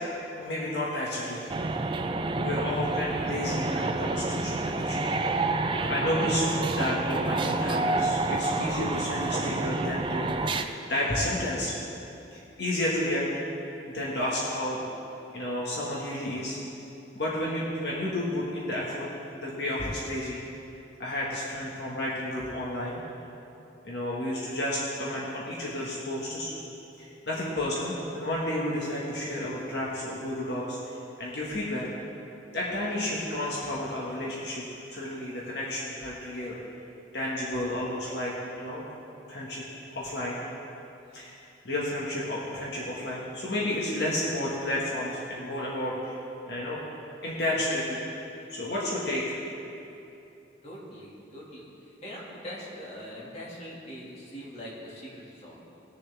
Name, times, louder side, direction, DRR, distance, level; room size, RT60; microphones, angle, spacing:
voice 1, 0.4-1.5 2.3-5.1 5.9-6.4 6.7-10.3 10.9-11.7 12.3-13.3 13.9-14.8 15.3-16.6 17.1-19.1 19.3-20.4 21.0-23.0 23.8-26.5 27.0-31.9 32.5-34.6 34.9-36.6 37.1-38.9 39.3-39.6 39.9-40.4 41.1-41.3 41.6-46.2 46.5-46.8 47.2-48.0 48.5-49.4, left 1 dB, 60° left, -5 dB, 1.7 m, -31 dB
sound 1, 1.5-10.6, right 2 dB, 25° right, 0.4 m, -28 dB
voice 2, 50.6-55.6, equal, 35° left, -5 dB, 2.2 m, -42 dB
20.0 x 6.9 x 3.5 m, 2.8 s
head